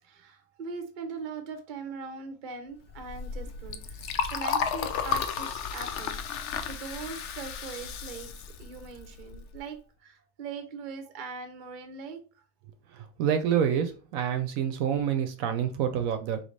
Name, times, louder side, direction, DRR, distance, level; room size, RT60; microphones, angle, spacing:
voice 1, 0.0-6.1 6.7-8.3 8.6-12.4, right 5 dB, 50° right, 0.6 m, -41 dB
Liquid, 2.9-9.6, left 7 dB, 70° left, 0.7 m, -33 dB
voice 2, 12.9-16.4, right 8 dB, 70° right, 0.9 m, -27 dB
4.0 x 3.1 x 3.2 m
omnidirectional pair, 1.6 m